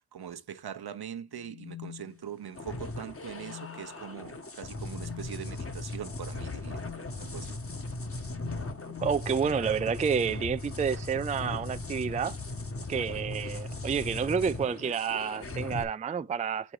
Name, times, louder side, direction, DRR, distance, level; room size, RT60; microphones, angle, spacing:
voice 1, 0.0-7.6, right 8 dB, 70° right, 0.9 m, -42 dB
sound 1, 1.3-2.6 3.3-4.0 4.8-5.3 6.7-7.1 8.2-9.3 10.8-12.6 13.7-14.1 15.4-15.6, left 14 dB, 75° left, 1.7 m, -48 dB
sound 2, 2.5-15.8, left 2 dB, 35° left, 1.2 m, -38 dB
voice 2, 9.0-12.4 12.9-16.7, right 6 dB, 20° right, 0.3 m, -29 dB
5.3 x 4.8 x 4.7 m
cardioid pair, 60°, 39 cm